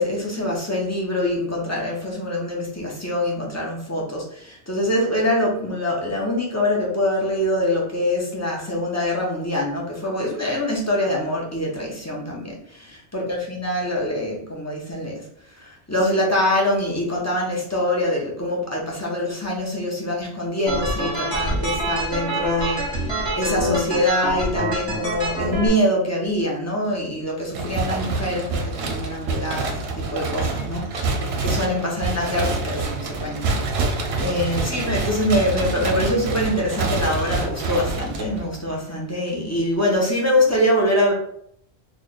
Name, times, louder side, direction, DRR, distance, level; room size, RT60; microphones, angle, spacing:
voice 1, 0.0-41.1, left 1 dB, 15° left, -3 dB, 0.8 m, -24 dB
sound 1, 20.7-25.7, right 1 dB, 25° right, 1.2 m, -25 dB
sound 2, 27.5-38.7, right 3 dB, 70° right, 0.8 m, -26 dB
3.2 x 2.4 x 3.9 m, 0.67 s
omnidirectional pair, 1.1 m